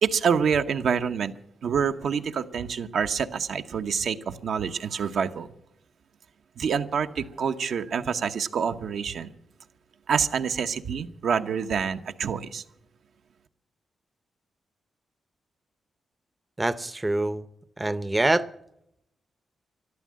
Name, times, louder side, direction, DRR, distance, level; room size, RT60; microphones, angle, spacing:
voice 1, 0.0-1.3 1.6-5.5 6.6-9.3 10.1-12.6, right 6 dB, 70° right, 7 dB, 0.9 m, -27 dB
voice 2, 16.6-17.5 17.8-18.5, right 2 dB, 15° right, 13 dB, 0.7 m, -25 dB
13.0 x 12.5 x 7.5 m, 0.79 s
cardioid pair, 110°, 0 cm